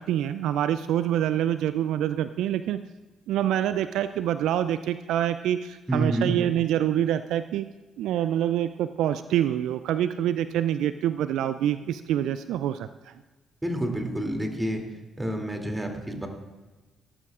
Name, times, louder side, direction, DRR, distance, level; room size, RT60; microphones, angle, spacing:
voice 1, 0.0-2.8 3.3-7.7 8.0-13.1, right 11 dB, 70° right, 12 dB, 0.3 m, -26 dB
voice 2, 5.9-6.3 13.6-14.8 15.2-16.3, right 1 dB, 15° right, 3 dB, 2.8 m, -28 dB
17.5 x 13.5 x 2.5 m, 1.2 s
hypercardioid pair, 45°, 0 cm